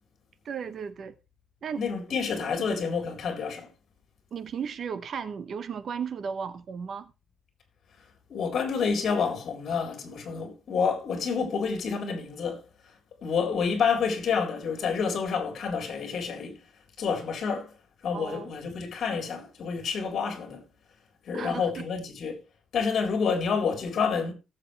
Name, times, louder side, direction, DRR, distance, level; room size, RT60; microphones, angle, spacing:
voice 1, 0.4-1.1 1.6-1.8 2.4-2.7 4.3-7.1 18.1-18.5 21.3-21.8, right 7 dB, 45° right, 0.8 m, -35 dB
voice 2, 1.8-3.7 8.3-12.6 13.2-16.6 17.0-17.7 18.0-20.6 21.2-22.4 22.7-24.3, left 5 dB, 50° left, 3.9 m, -28 dB
18.5 x 7.7 x 3.3 m
cardioid pair, 170°, 0 cm